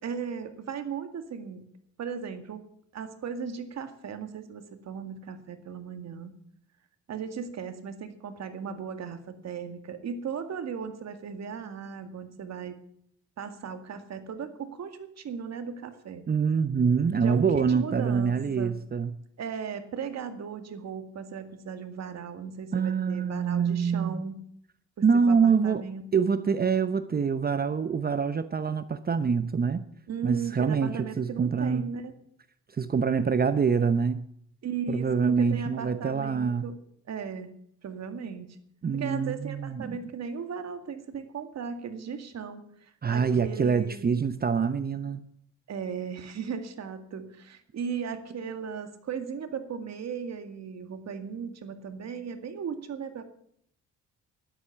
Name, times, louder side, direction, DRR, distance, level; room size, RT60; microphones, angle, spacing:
voice 1, 0.0-1.7 2.0-2.6 2.9-6.4 7.1-12.7 13.4-16.2 17.2-18.7 19.4-24.5 25.0-26.4 30.1-32.1 34.6-36.8 37.1-37.5 37.8-38.5 38.9-44.1 45.7-53.3, right 6 dB, 60° right, 8 dB, 2.1 m, -37 dB
voice 2, 16.3-19.1 22.7-24.2 25.0-25.8 26.1-29.9 30.2-31.9 32.8-34.2 34.9-36.7 38.8-40.0 43.0-45.2, right 6 dB, 30° right, 12 dB, 0.8 m, -25 dB
13.0 x 11.5 x 6.9 m, 0.67 s
cardioid pair, 90°, 30 cm